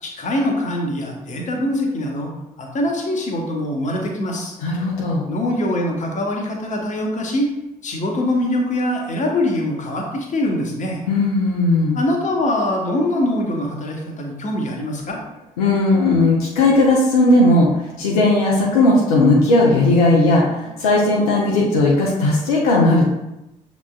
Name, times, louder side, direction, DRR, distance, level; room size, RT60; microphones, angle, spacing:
voice 1, 0.0-2.3 2.6-4.5 5.3-7.5 7.8-11.0 11.9-15.2, left 1 dB, 40° left, 1 dB, 1.0 m, -23 dB
voice 2, 4.6-5.3 11.1-12.0 15.6-17.7 18.0-23.0, left 2 dB, 75° left, -3 dB, 0.7 m, -16 dB
7.0 x 3.0 x 2.3 m, 0.94 s
figure-of-eight pair, 40°, 19 cm